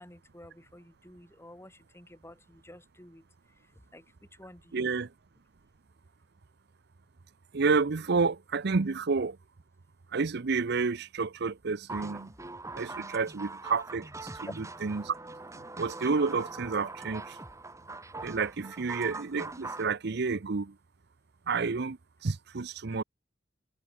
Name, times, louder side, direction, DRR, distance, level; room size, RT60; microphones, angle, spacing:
voice 1, 0.0-3.2 3.9-4.0 4.4-4.9, left 1 dB, 15° left, 3.2 m, -52 dB
voice 2, 4.7-5.1 7.5-9.4 10.1-12.3 12.7-15.1 15.5-17.4 18.2-20.7 21.5-23.0, right 4 dB, 60° right, 0.7 m, -30 dB
sound 1, 11.9-19.9, right 3 dB, 15° right, 1.5 m, -42 dB
head